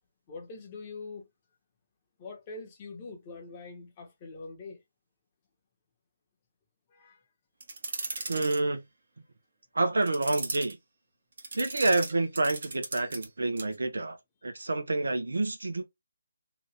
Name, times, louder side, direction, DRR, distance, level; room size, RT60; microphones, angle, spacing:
voice 1, 0.3-1.3 2.2-4.8 6.9-7.2, left 3 dB, 25° left, 1.1 m, -43 dB
sound 1, 7.6-8.6 10.0-10.7 11.4-13.3 13.6-13.8, right 3 dB, 60° right, 1.2 m, -37 dB
voice 2, 8.3-8.8 9.7-10.8 11.5-14.2 14.4-15.8, right 2 dB, 80° right, 0.8 m, -28 dB
3.0 x 2.5 x 3.3 m
figure-of-eight pair, 160°, 0 cm